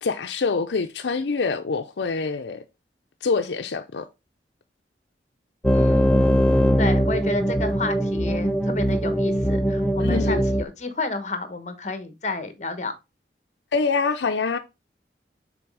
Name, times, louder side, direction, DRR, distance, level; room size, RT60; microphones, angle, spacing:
voice 1, 0.0-2.6 3.2-4.1 10.0-10.4 13.7-14.6, left 4 dB, 80° left, 0.6 m, -25 dB
sound 1, 5.6-10.6, equal, 5° left, 0.4 m, -21 dB
voice 2, 5.7-6.2 6.8-12.9, left 2 dB, 40° left, 1.1 m, -30 dB
6.2 x 4.0 x 4.6 m
head